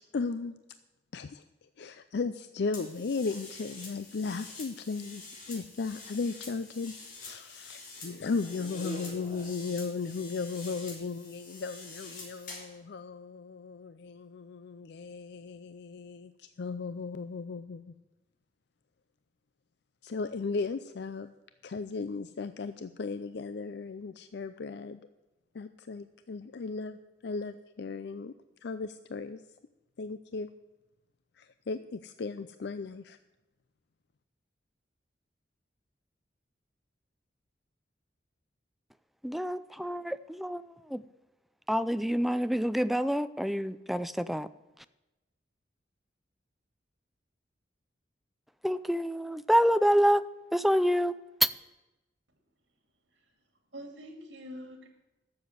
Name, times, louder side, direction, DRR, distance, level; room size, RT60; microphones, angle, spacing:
voice 1, 0.1-0.6 1.1-1.4 1.8-17.9 20.0-21.3 21.6-25.1 25.5-28.3 28.6-29.4 30.0-30.5 31.4-33.2, left 4 dB, 65° left, 11 dB, 0.5 m, -36 dB
sound 1, 2.7-12.8, left 2 dB, 50° left, 5.1 m, -46 dB
voice 2, 39.2-40.6 40.9-41.0 41.7-44.5 48.6-50.2 50.5-51.5, equal, ahead, 13 dB, 0.3 m, -27 dB
voice 3, 53.7-54.9, equal, 80° right, 4 dB, 2.5 m, -45 dB
12.5 x 7.2 x 8.0 m, 1.0 s
head